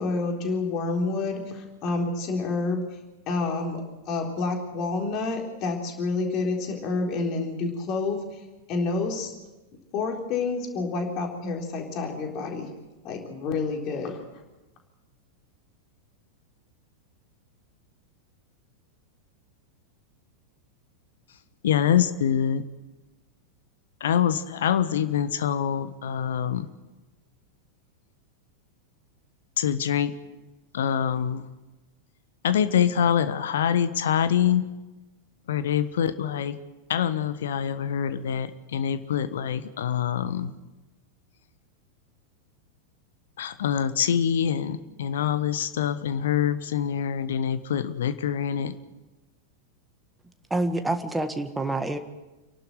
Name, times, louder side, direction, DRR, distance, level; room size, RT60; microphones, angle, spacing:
voice 1, 0.0-2.8 3.3-9.3 9.9-12.7 13.0-14.2, left 3 dB, 40° left, 1 dB, 3.9 m, -29 dB
voice 2, 21.6-22.6 24.0-26.7 29.6-30.1 30.7-31.4 32.4-34.7 35.5-36.6 36.9-40.5 43.4-48.7, left 9 dB, 60° left, 12 dB, 1.3 m, -25 dB
voice 3, 50.5-52.0, right 2 dB, 5° right, 7 dB, 1.6 m, -27 dB
29.5 x 11.5 x 7.9 m, 1.1 s
figure-of-eight pair, 90°, 0 cm